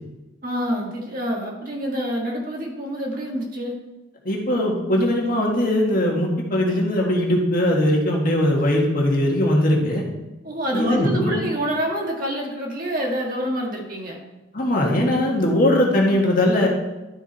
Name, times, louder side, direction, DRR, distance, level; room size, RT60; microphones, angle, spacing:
voice 1, 0.4-3.7 10.4-14.2, equal, 45° right, -1 dB, 1.8 m, -26 dB
voice 2, 4.2-10.0 10.7-11.4 14.5-16.7, left 1 dB, 45° left, -1 dB, 1.7 m, -20 dB
11.5 x 4.8 x 4.3 m, 1.1 s
head